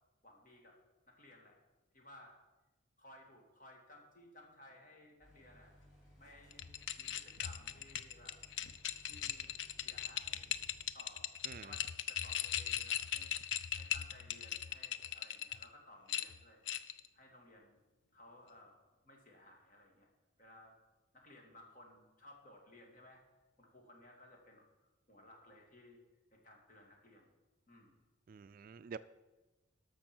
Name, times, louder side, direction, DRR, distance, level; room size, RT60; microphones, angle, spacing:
voice 1, 0.2-0.8 1.1-1.6 1.9-2.4 3.0-5.7 6.2-8.4 9.1-10.5 10.9-13.3 13.7-16.6 17.1-17.8 18.1-18.8 19.0-20.1 20.4-20.8 21.1-23.2 23.6-26.0 26.3-27.3 27.7-28.0, left 1 dB, 45° left, 2.2 m, -59 dB
sound 1, 5.2-10.9, equal, 5° right, 3.3 m, -63 dB
sound 2, 6.5-15.6 16.1-17.1, left 10 dB, 70° left, 0.5 m, -39 dB
voice 2, 28.3-29.0, right 6 dB, 45° right, 0.3 m, -48 dB
12.5 x 6.2 x 6.1 m
head